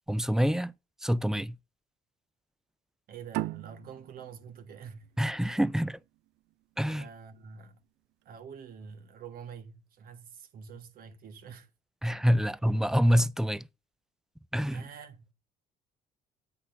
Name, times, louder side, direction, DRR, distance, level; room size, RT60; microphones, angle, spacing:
voice 1, 0.1-0.7 1.0-1.5 5.2-6.0 6.8-7.0 12.0-13.6 14.5-14.8, equal, 5° right, 0.3 m, -26 dB
voice 2, 3.1-5.1 6.9-7.8 8.2-11.7 12.4-12.5 14.7-15.3, right 6 dB, 60° right, 1.3 m, -46 dB
sound 1, 3.3-6.5, right 18 dB, 85° right, 0.4 m, -39 dB
8.6 x 4.1 x 5.3 m
cardioid pair, 110°, 17 cm